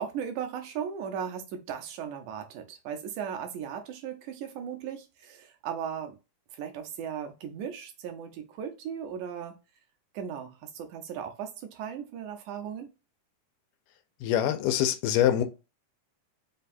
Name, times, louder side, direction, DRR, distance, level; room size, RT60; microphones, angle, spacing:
voice 1, 0.0-6.2 6.5-9.6 10.1-12.9, right 8 dB, 75° right, 2.2 m, -37 dB
voice 2, 14.2-15.4, left 11 dB, 90° left, 2.3 m, -24 dB
5.5 x 2.3 x 4.2 m
omnidirectional pair, 3.7 m